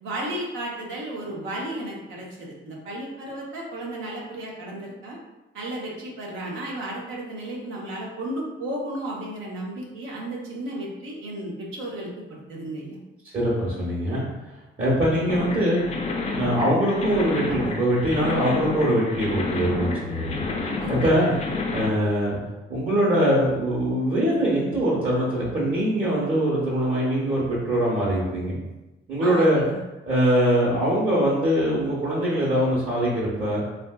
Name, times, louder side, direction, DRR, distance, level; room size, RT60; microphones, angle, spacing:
voice 1, 0.0-5.2 5.5-13.0 20.8-21.5 29.2-29.8, right 1 dB, 85° right, -3 dB, 0.8 m, -34 dB
voice 2, 13.3-14.2 14.8-15.8 16.3-20.4 20.9-21.3 21.7-22.4 22.7-28.6 29.1-29.6 30.0-33.6, equal, 45° right, -7 dB, 1.0 m, -22 dB
sound 1, 15.3-21.9, left 3 dB, 35° left, 0.4 m, -30 dB
3.4 x 2.5 x 2.3 m, 1.0 s
cardioid pair, 90°, 20 cm